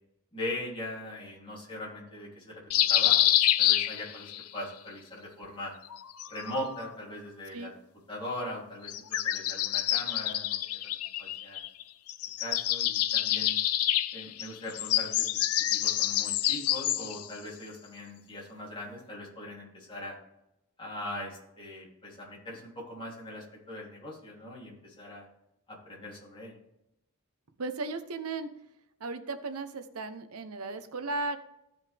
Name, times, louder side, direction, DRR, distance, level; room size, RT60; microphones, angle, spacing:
voice 1, 0.3-2.6 2.9-3.2 3.6-5.7 6.3-7.7 8.1-11.6 12.4-13.6 14.1-20.2 20.8-25.3 25.7-26.6, left 1 dB, 25° left, -5 dB, 3.1 m, -40 dB
sound 1, 2.7-4.4 5.9-6.9 8.8-11.8 12.1-17.3, left 13 dB, 75° left, 0.5 m, -27 dB
voice 2, 27.6-28.5 29.0-31.4, right 3 dB, 75° right, 10 dB, 0.9 m, -35 dB
15.0 x 5.3 x 3.5 m, 0.87 s
head